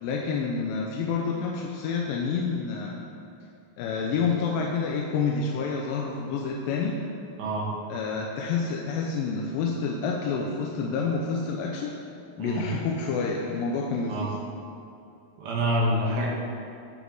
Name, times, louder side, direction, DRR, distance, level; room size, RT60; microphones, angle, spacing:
voice 1, 0.0-3.0 3.8-7.0 7.9-11.9 12.4-14.3, left 5 dB, 85° left, -1 dB, 2.4 m, -28 dB
voice 2, 15.4-16.3, equal, 85° right, -4 dB, 3.6 m, -26 dB
16.5 x 6.3 x 3.5 m, 2.6 s
omnidirectional pair, 4.1 m